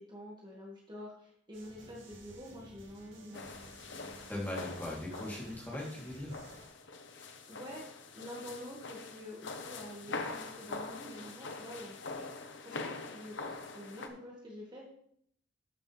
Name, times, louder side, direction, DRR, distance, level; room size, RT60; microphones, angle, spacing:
voice 1, 0.0-3.5 7.1-7.8 8.1-14.8, equal, 25° right, -3 dB, 1.7 m, -47 dB
sound 1, 1.5-6.7, right 2 dB, 75° right, 2.8 m, -55 dB
sound 2, 3.3-14.1, left 3 dB, 70° left, 1.0 m, -44 dB
voice 2, 4.3-6.3, left 1 dB, 10° left, -5 dB, 2.8 m, -39 dB
13.0 x 6.9 x 3.3 m, 0.68 s
head